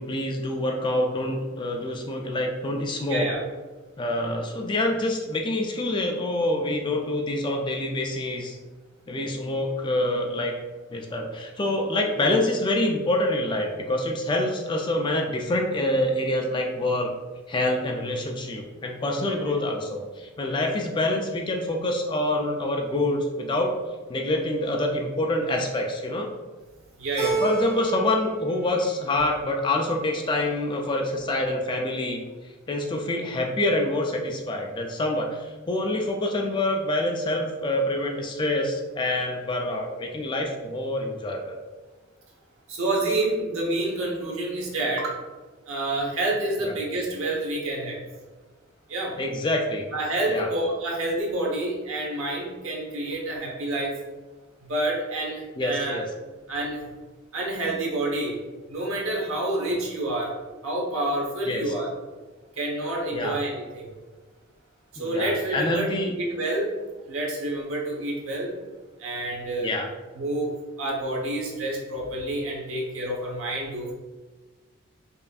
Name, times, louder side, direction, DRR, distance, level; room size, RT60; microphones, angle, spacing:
voice 1, 0.0-3.3 4.0-8.6 9.1-10.5 10.9-17.1 17.5-23.7 24.1-26.3 27.2-32.2 32.7-41.6 46.6-46.8 49.2-49.9 50.3-50.5 55.6-56.1 61.5-61.6 63.1-63.4 65.0-66.1 69.6-69.9, left 1 dB, 20° left, 2 dB, 0.3 m, -26 dB
voice 2, 3.1-3.4 19.2-19.5 27.0-27.3 42.7-45.1 45.7-48.0 48.9-49.2 49.9-53.9 54.7-56.0 56.5-56.8 57.3-58.4 58.7-60.3 60.6-61.9 62.6-63.9 64.9-66.8 67.1-68.5 69.0-69.7 70.1-70.5 70.8-73.9, right 1 dB, 80° right, -2 dB, 0.9 m, -28 dB
Keyboard (musical), 27.2-28.3 28.6-29.3, right 5 dB, 50° right, 1.1 m, -29 dB
5.2 x 2.6 x 2.3 m, 1.3 s
head